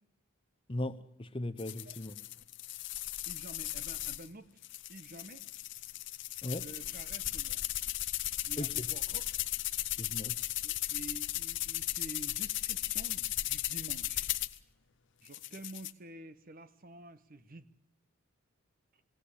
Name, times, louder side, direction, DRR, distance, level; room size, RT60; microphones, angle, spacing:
voice 1, 0.7-2.2 6.4-6.6 8.6-8.9 10.0-10.3, left 1 dB, 25° left, 11 dB, 0.8 m, -37 dB
sound 1, 1.6-4.3 4.6-14.6 15.3-15.9, left 15 dB, 55° left, 0.7 m, -36 dB
voice 2, 1.9-2.2 3.3-4.6 4.9-5.4 6.6-7.6 8.5-9.3 10.6-14.4 15.2-17.7, right 2 dB, 40° right, 13 dB, 1.0 m, -49 dB
21.5 x 16.5 x 8.5 m, 0.85 s
head